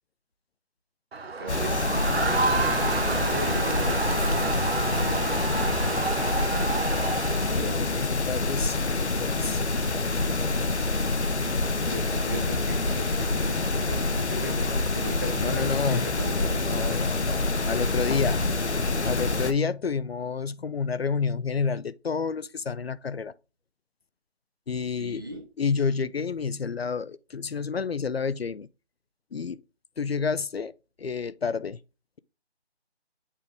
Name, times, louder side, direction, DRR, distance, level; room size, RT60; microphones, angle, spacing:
Crowd, 1.1-7.9, right 4 dB, 65° right, 0.9 m, -29 dB
voice 1, 1.4-2.6 3.0-3.9 7.4-8.2 11.5-11.6 11.9-14.6 14.9-17.0 25.0-25.4, right 1 dB, 20° right, 0.7 m, -39 dB
sound 1, 1.5-19.5, left 2 dB, 80° left, 1.0 m, -26 dB
voice 2, 6.9-7.2 7.5-9.6 15.4-16.1 16.7-18.5 19.0-23.3 24.7-25.2 25.6-28.7 29.3-29.6 30.0-30.7 31.0-31.8, left 5 dB, 65° left, 0.5 m, -29 dB
8.4 x 3.5 x 3.7 m
figure-of-eight pair, 165°, 33 cm